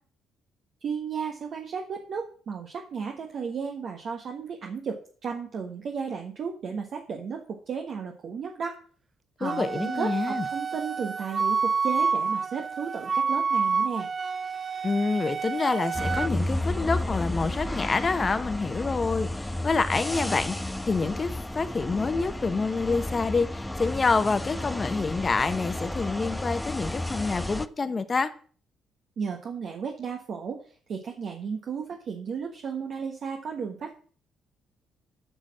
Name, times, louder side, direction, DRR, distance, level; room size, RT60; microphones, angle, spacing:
voice 1, 0.8-8.8 9.4-14.1 29.2-33.9, right 6 dB, 55° right, 1.5 m, -34 dB
voice 2, 9.4-10.4 14.8-19.3 19.6-28.3, left 4 dB, 30° left, 1.2 m, -27 dB
Wind instrument woodwind instrument, 9.5-16.3, right 5 dB, 35° right, 0.4 m, -28 dB
sound 1, 15.9-27.7, left 1 dB, 10° left, 0.6 m, -32 dB
7.8 x 6.2 x 7.4 m
supercardioid pair, 75°, 0 cm